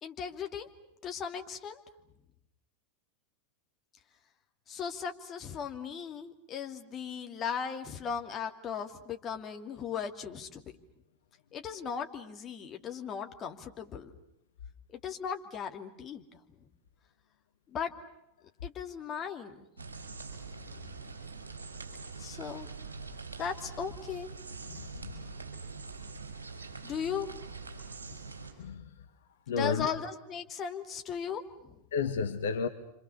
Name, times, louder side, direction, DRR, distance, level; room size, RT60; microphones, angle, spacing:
voice 1, 0.0-0.7 1.0-1.8 4.7-10.6 11.5-14.1 14.9-16.4 17.7-17.9 18.6-19.8 22.2-22.7 23.4-24.3 26.8-27.3 29.6-31.8, left 7 dB, 30° left, 4 dB, 2.6 m, -37 dB
sound 1, 19.8-28.5, right 4 dB, 75° right, 5.4 m, -44 dB
voice 2, 24.7-25.3 28.6-29.0 29.5-29.9 31.9-32.7, left 5 dB, 60° left, 10 dB, 1.4 m, -32 dB
30.0 x 25.5 x 7.0 m, 0.83 s
figure-of-eight pair, 90°, 0 cm